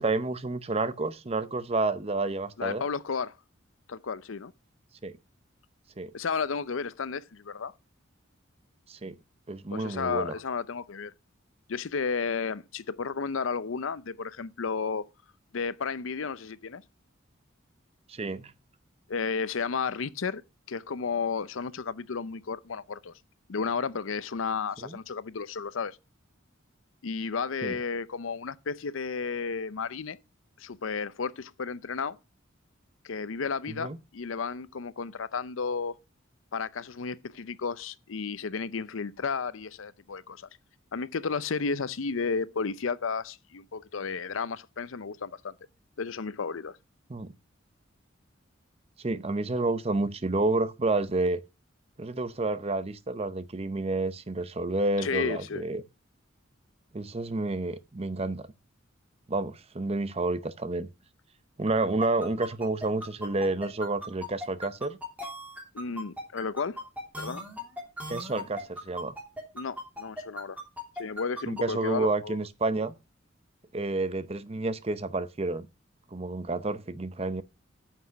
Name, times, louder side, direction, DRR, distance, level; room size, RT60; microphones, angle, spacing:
voice 1, 0.0-2.8 5.0-5.1 6.0-6.1 8.9-9.2 9.5-10.3 18.1-18.5 24.8-25.0 27.6-27.8 33.7-34.0 47.1-47.3 49.0-51.4 52.0-55.8 56.9-58.5 59.3-60.9 61.6-65.0 68.1-69.1 71.5-72.9 73.7-75.7 76.1-77.4, right 2 dB, 30° right, 0.7 m, -30 dB
voice 2, 2.6-3.3 3.9-4.5 6.1-7.7 9.7-11.1 11.7-15.1 15.5-16.8 19.1-20.4 20.7-23.1 23.5-26.0 27.0-30.2 30.6-32.2 33.0-36.0 36.5-40.5 40.9-45.5 46.0-46.8 55.0-55.6 65.7-66.9 67.2-67.4 69.5-70.6 71.0-72.4, left 5 dB, 80° left, 0.6 m, -33 dB
sound 1, 62.0-71.6, left 1 dB, 10° right, 3.0 m, -38 dB
9.6 x 6.0 x 5.7 m
head